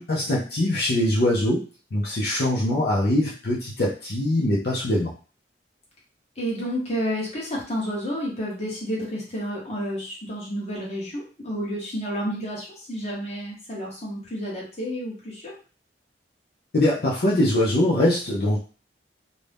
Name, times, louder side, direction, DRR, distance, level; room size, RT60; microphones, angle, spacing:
voice 1, 0.0-1.6 1.9-5.1 16.7-18.6, left 1 dB, 60° left, -5 dB, 0.5 m, -22 dB
voice 2, 6.4-15.5, equal, 35° left, -4 dB, 1.0 m, -30 dB
2.6 x 2.1 x 3.3 m, 0.37 s
head